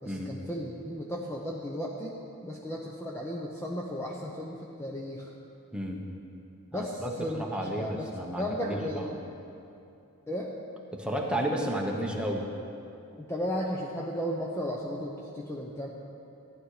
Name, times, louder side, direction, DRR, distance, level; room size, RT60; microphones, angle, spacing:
voice 1, 0.0-2.2 2.4-5.3 6.7-8.1 8.4-9.2 10.3-10.5 13.2-15.9, equal, 10° left, -2 dB, 0.8 m, -35 dB
voice 2, 5.7-6.0 6.7-7.1 7.4-9.2 10.9-12.5, right 1 dB, 5° right, -1 dB, 1.2 m, -32 dB
14.5 x 10.5 x 4.9 m, 2.7 s
head